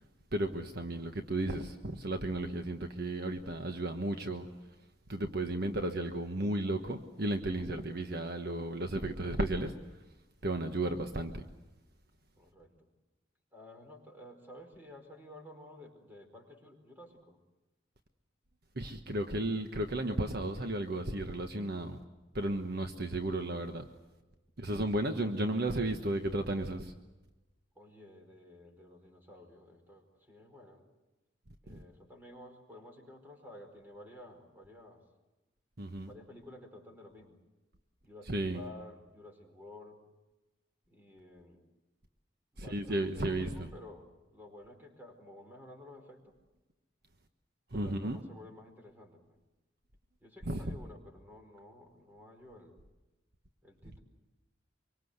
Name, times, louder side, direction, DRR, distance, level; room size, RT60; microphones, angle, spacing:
voice 1, 0.3-4.5 5.1-9.7 10.4-11.5 18.8-22.0 22.3-23.9 24.6-26.9 31.7-31.8 35.8-36.1 38.3-38.6 42.6-43.5 47.7-48.2 50.5-50.6, right 1 dB, 55° right, 6 dB, 1.3 m, -34 dB
voice 2, 12.4-12.9 13.5-17.4 27.7-30.8 31.6-35.0 36.1-37.4 38.0-40.0 40.9-41.6 42.5-46.3 47.7-49.2 50.2-52.8 53.6-54.0, left 1 dB, 10° right, 3 dB, 4.8 m, -53 dB
25.5 x 24.5 x 8.1 m, 1.1 s
head